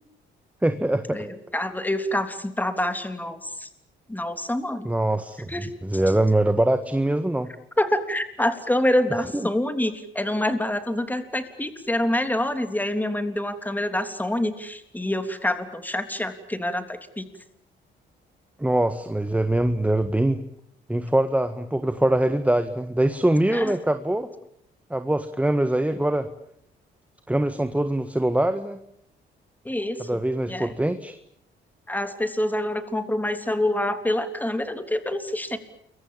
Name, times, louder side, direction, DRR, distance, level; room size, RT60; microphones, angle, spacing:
voice 1, 0.6-1.2 4.8-5.5 5.8-7.5 9.3-9.5 18.6-20.4 20.9-24.3 24.9-26.3 27.3-28.8 30.0-31.1, right 1 dB, 5° right, 9 dB, 1.7 m, -23 dB
voice 2, 1.1-3.7 4.1-4.9 5.5-5.7 7.8-17.3 23.5-23.7 29.7-30.2 30.5-30.7 31.9-35.6, left 1 dB, 10° left, 8 dB, 3.4 m, -26 dB
29.0 x 23.5 x 7.4 m, 0.73 s
cardioid pair, 90°, 20 cm